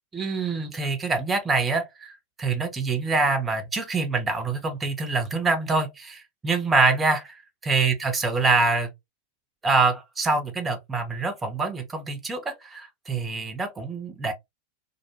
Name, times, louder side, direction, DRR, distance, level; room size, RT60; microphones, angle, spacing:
voice 1, 0.1-2.1 2.4-7.3 7.6-8.9 9.6-14.3, right 3 dB, 15° right, 0.6 m, -25 dB
2.5 x 2.1 x 2.7 m
figure-of-eight pair, 90°, 0 cm